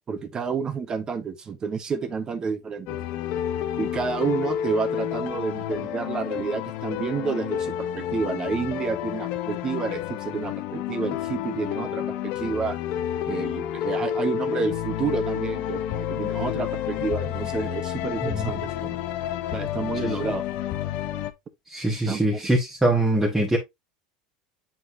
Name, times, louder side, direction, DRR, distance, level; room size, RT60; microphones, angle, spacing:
voice 1, 0.1-3.0 3.8-12.8 13.3-19.0 19.5-20.4 22.1-22.5, right 5 dB, 25° right, 1.1 m, -30 dB
sound 1, 2.9-21.3, left 11 dB, 55° left, 0.8 m, -30 dB
voice 2, 21.7-23.6, right 1 dB, 5° right, 1.5 m, -23 dB
7.9 x 4.4 x 2.7 m
supercardioid pair, 125°, 3 cm